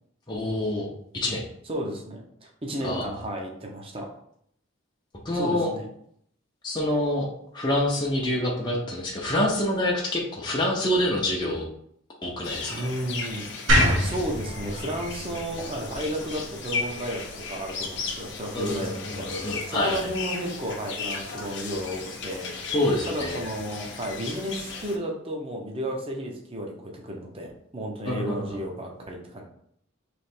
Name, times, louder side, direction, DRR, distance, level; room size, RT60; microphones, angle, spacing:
voice 1, 0.3-0.9 1.1-1.4 2.8-3.1 5.2-5.7 6.6-7.3 7.5-11.7 12.2-12.9 18.5-20.1 22.7-23.4 28.1-28.6, left 1 dB, 20° left, -3 dB, 0.6 m, -26 dB
voice 2, 1.7-4.1 5.3-5.9 12.7-13.4 14.0-22.7 23.1-29.4, right 1 dB, 25° right, 1 dB, 0.7 m, -33 dB
sound 1, 12.4-25.0, left 4 dB, 60° left, 0.7 m, -35 dB
sound 2, 13.7-16.8, right 1 dB, 70° right, 1.2 m, -25 dB
3.3 x 3.0 x 4.3 m, 0.69 s
head